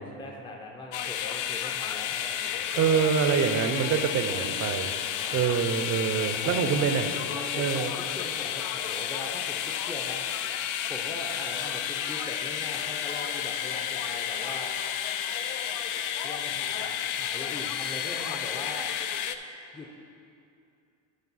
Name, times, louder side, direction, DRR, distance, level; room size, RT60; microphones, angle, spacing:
voice 1, 0.0-3.2 4.3-4.5 5.2-5.5 6.3-6.9 7.3-10.2 10.9-14.7 16.2-18.9 19.7-20.0, left 2 dB, 10° left, 0 dB, 0.7 m, -41 dB
sound 1, 0.9-19.4, left 9 dB, 50° left, 0.5 m, -31 dB
voice 2, 2.8-4.9 5.3-7.0 7.6-7.9, right 7 dB, 40° right, 8 dB, 0.7 m, -25 dB
11.5 x 5.2 x 4.1 m, 2.6 s
supercardioid pair, 120°, 41 cm